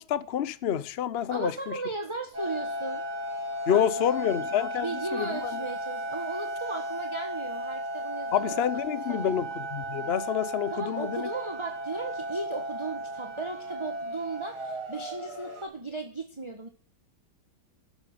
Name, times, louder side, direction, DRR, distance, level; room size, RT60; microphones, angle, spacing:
voice 1, 0.0-1.8 3.7-5.6 8.3-11.3, left 9 dB, 90° left, 0.5 m, -28 dB
voice 2, 1.3-3.0 3.6-4.2 4.8-8.6 8.9-9.5 10.7-16.7, right 3 dB, 15° right, 1.2 m, -36 dB
sound 1, 2.3-15.6, right 1 dB, 75° right, 5.0 m, -35 dB
13.5 x 11.0 x 7.7 m
omnidirectional pair, 2.3 m